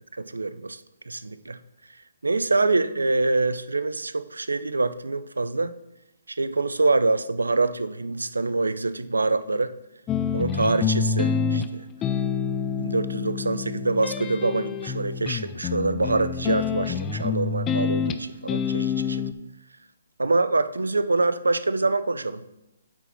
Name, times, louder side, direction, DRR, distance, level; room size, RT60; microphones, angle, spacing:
voice 1, 0.1-0.8 1.1-1.6 2.2-5.7 6.3-9.8 10.3-11.9 12.8-19.2 20.2-22.4, right 3 dB, 85° right, 15 dB, 0.5 m, -25 dB
sound 1, 10.1-19.3, left 6 dB, 20° left, 0.5 m, -27 dB
8.9 x 4.2 x 5.7 m, 0.90 s
figure-of-eight pair, 140°, 0 cm